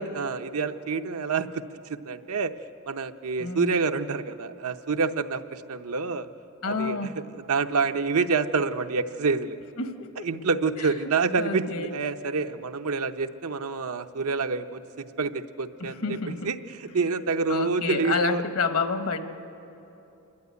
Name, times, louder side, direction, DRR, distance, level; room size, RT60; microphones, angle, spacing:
voice 1, 0.0-1.6 2.0-2.5 2.9-6.3 6.6-7.2 7.5-9.6 10.2-16.2 16.4-18.4, right 4 dB, 85° right, 8 dB, 0.8 m, -27 dB
voice 2, 3.4-3.7 6.6-7.1 9.8-10.3 10.8-11.1 11.4-11.9 15.8-16.5 17.5-19.2, left 4 dB, 75° left, 8 dB, 1.3 m, -29 dB
28.0 x 12.0 x 9.5 m, 3.0 s
head